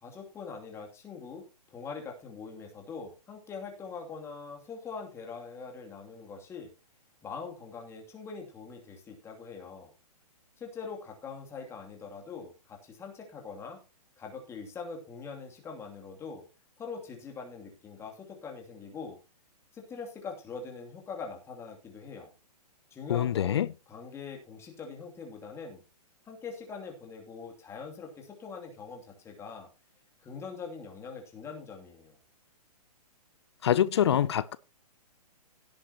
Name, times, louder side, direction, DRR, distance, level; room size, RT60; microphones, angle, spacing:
voice 1, 0.0-6.7 7.2-9.9 10.6-13.8 14.2-16.4 16.8-19.2 19.7-22.3 22.9-25.8 26.3-29.7 30.2-32.2, left 5 dB, 15° left, 2.7 m, -43 dB
voice 2, 23.1-23.7 33.6-34.6, left 10 dB, 40° left, 0.5 m, -25 dB
17.0 x 8.5 x 2.9 m
figure-of-eight pair, 120°, 20 cm